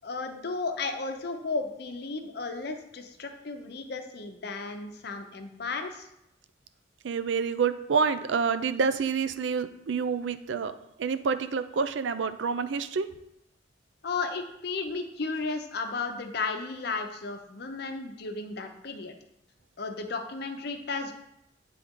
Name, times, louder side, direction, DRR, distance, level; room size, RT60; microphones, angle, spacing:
voice 1, 0.0-6.1 14.0-19.1 19.8-21.1, left 4 dB, 60° left, 6 dB, 0.7 m, -34 dB
voice 2, 7.0-10.7 11.0-13.1, right 5 dB, 85° right, 11 dB, 0.4 m, -28 dB
8.4 x 3.8 x 3.6 m, 0.82 s
head